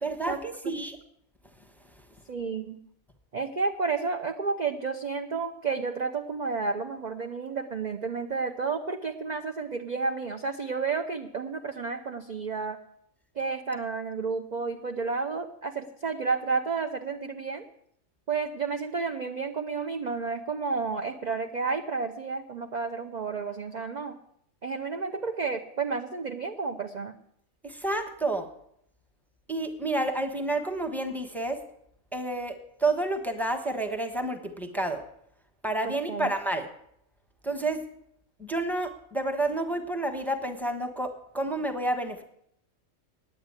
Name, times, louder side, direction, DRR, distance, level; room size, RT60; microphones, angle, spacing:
voice 1, 0.0-1.0 27.6-28.5 29.5-31.6 32.1-35.0 35.6-36.7 37.4-37.8 38.4-42.2, right 2 dB, ahead, 4 dB, 1.0 m, -30 dB
voice 2, 2.3-2.8 3.3-12.8 13.4-17.7 18.3-24.2 24.6-27.1 35.8-36.3, right 4 dB, 45° right, 5 dB, 0.6 m, -31 dB
9.3 x 8.2 x 9.5 m, 0.72 s
omnidirectional pair, 1.5 m